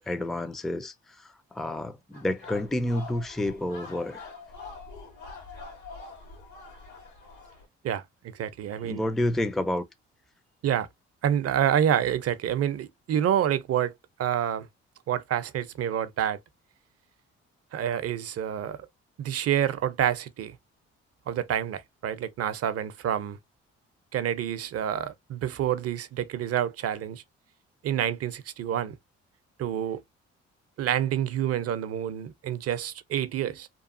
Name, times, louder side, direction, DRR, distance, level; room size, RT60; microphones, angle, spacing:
voice 1, 0.1-4.2 8.8-9.8, left 1 dB, ahead, 0.4 m, -29 dB
sound 1, 2.1-7.7, left 4 dB, 80° left, 1.5 m, -44 dB
voice 2, 7.8-9.0 10.6-10.9 11.2-13.9 14.2-14.7 15.1-16.4 17.7-18.8 19.2-20.6 21.3-23.4 24.1-27.2 27.8-29.0 29.6-30.0 30.8-33.7, right 10 dB, 55° right, 0.5 m, -28 dB
2.9 x 2.3 x 2.4 m
supercardioid pair, 60°, 29 cm